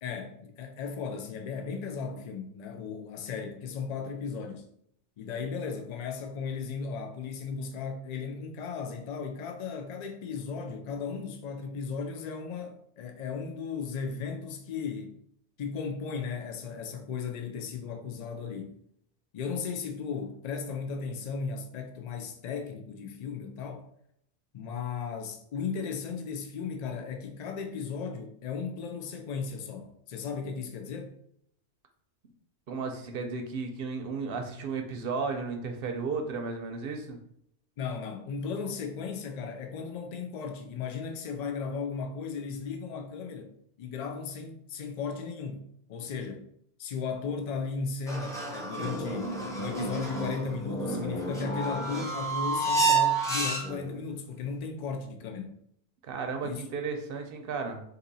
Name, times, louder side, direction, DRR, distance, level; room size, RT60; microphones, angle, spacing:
voice 1, 0.0-4.7 5.2-15.2 15.6-18.8 19.3-23.8 24.5-31.1 37.8-43.5 43.8-46.5 46.8-55.6 56.4-56.6, left 5 dB, 60° left, 0.4 m, -36 dB
voice 2, 32.7-37.2 56.0-57.8, right 4 dB, 60° right, 0.7 m, -34 dB
sound 1, 48.1-53.9, right 3 dB, 5° left, 0.6 m, -30 dB
2.7 x 2.6 x 3.9 m
omnidirectional pair, 1.2 m